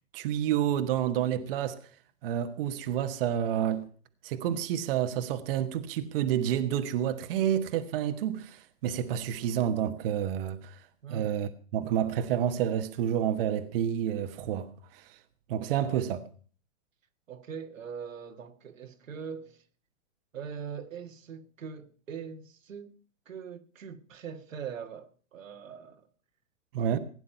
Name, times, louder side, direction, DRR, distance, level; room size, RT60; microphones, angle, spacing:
voice 1, 0.1-1.8 2.2-3.8 4.2-10.8 11.1-15.1 15.5-16.2 26.7-27.0, right 10 dB, 45° right, 1.3 m, -29 dB
voice 2, 17.3-19.6 20.3-22.9 23.2-26.1, right 7 dB, 80° right, 1.8 m, -42 dB
16.5 x 9.9 x 5.6 m
hypercardioid pair, 135°, 39 cm